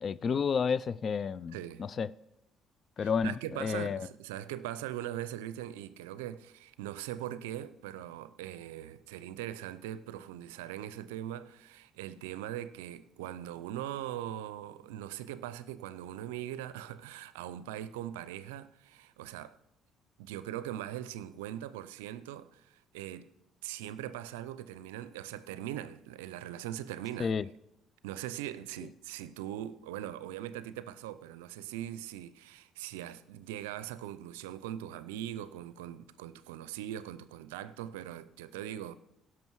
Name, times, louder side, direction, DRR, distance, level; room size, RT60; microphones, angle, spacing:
voice 1, 0.0-2.1 3.0-4.1 27.2-27.5, left 6 dB, 50° left, 0.4 m, -31 dB
voice 2, 1.5-1.9 3.0-19.6 20.2-23.3 23.6-27.3 28.0-38.9, right 12 dB, 90° right, 0.4 m, -41 dB
16.5 x 6.2 x 4.7 m
hypercardioid pair, 60°, 0 cm